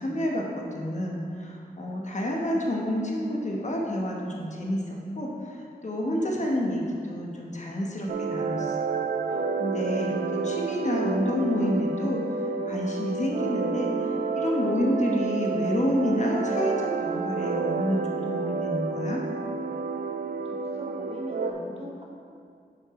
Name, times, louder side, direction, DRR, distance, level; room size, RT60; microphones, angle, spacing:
voice 1, 0.0-8.9 9.6-12.2 12.7-19.2, equal, 45° left, -2 dB, 1.2 m, -29 dB
sound 1, 8.1-21.5, right 4 dB, 60° right, 0.4 m, -30 dB
voice 2, 20.4-22.0, equal, 35° right, -3 dB, 1.5 m, -41 dB
6.7 x 6.3 x 3.7 m, 2.2 s
cardioid pair, 65°, 17 cm